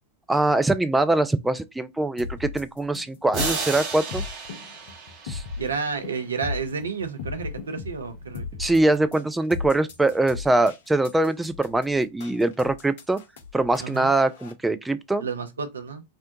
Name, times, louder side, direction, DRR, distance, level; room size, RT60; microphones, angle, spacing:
voice 1, 0.3-4.2 5.2-5.4 8.6-13.2 13.5-15.2, right 2 dB, 5° right, 0.3 m, -23 dB
sound 1, 2.2-14.5, left 4 dB, 55° left, 0.5 m, -36 dB
sound 2, 3.3-6.0, right 4 dB, 40° right, 0.9 m, -32 dB
voice 2, 5.6-8.6 13.8-14.1 15.2-16.0, right 5 dB, 70° right, 0.5 m, -31 dB
2.6 x 2.1 x 2.7 m
figure-of-eight pair, 90°, 0 cm